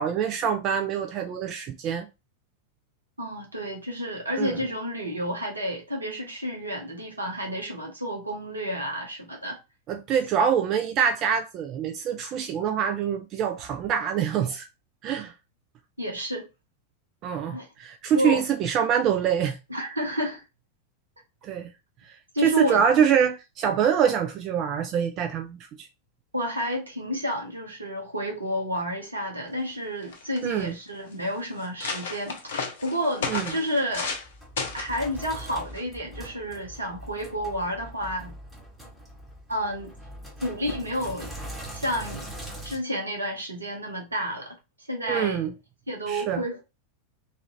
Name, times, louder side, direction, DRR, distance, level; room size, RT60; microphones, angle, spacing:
voice 1, 0.0-2.1 4.4-4.5 9.9-14.7 15.0-15.3 17.2-19.6 21.4-21.7 22.4-25.9 30.4-30.7 33.3-33.4 45.1-45.5 46.1-46.4, right 8 dB, 35° right, 0.3 m, -25 dB
voice 2, 3.2-9.6 16.0-16.5 17.5-17.7 18.1-18.4 19.7-20.4 22.3-22.8 26.3-32.5 32.8-34.1 34.7-38.4 39.5-39.9 40.4-41.3 41.7-42.3 42.6-44.5 44.9-45.4 45.9-46.6, equal, 80° right, 0.9 m, -30 dB
sound 1, 29.7-29.8 30.0-30.6 31.2-31.3 31.6-34.3 34.6-35.0 35.7-36.0, left 5 dB, 60° left, 0.6 m, -33 dB
Sink (filling or washing), 33.9-42.8, right 1 dB, 5° right, 1.1 m, -41 dB
2.6 x 2.5 x 2.9 m
figure-of-eight pair, 90°, 0 cm